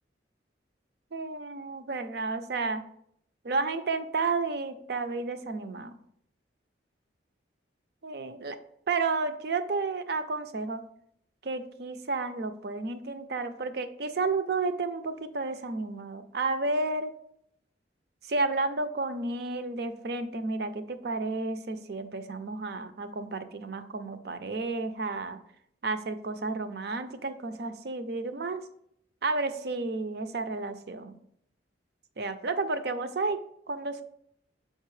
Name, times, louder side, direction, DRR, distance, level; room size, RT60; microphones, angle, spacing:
voice 1, 1.1-2.8 3.4-6.0 8.0-8.6 8.9-10.8 11.4-17.1 18.3-25.4 25.8-28.6 29.2-31.2 32.2-34.0, right 3 dB, 60° right, 10 dB, 0.5 m, -31 dB
6.5 x 5.2 x 3.2 m, 0.70 s
head